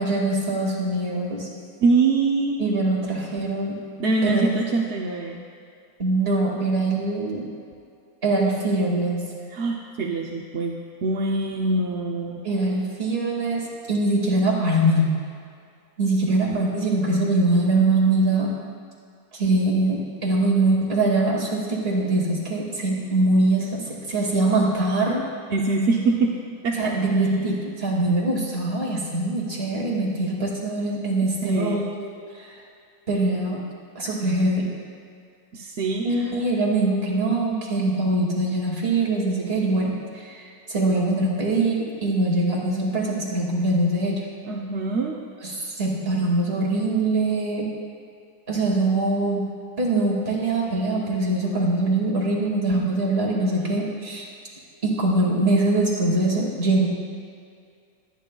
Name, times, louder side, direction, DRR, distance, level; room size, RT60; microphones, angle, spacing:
voice 1, 0.0-1.5 2.6-3.8 4.2-4.5 6.0-7.5 8.2-9.3 12.4-15.2 16.0-18.5 19.3-25.2 26.8-32.5 33.1-33.7 34.0-34.7 36.0-40.4 40.7-44.2 45.4-47.7 48.5-49.4 49.8-54.2 54.8-56.9, right 2 dB, 40° right, -3 dB, 2.2 m, -23 dB
voice 2, 1.8-2.6 4.0-5.4 9.5-12.4 25.5-26.4 26.6-27.0 31.4-31.9 35.5-36.3 44.4-45.2, right 3 dB, 55° right, -1 dB, 0.8 m, -24 dB
21.5 x 9.5 x 2.3 m, 2.3 s
omnidirectional pair, 1.7 m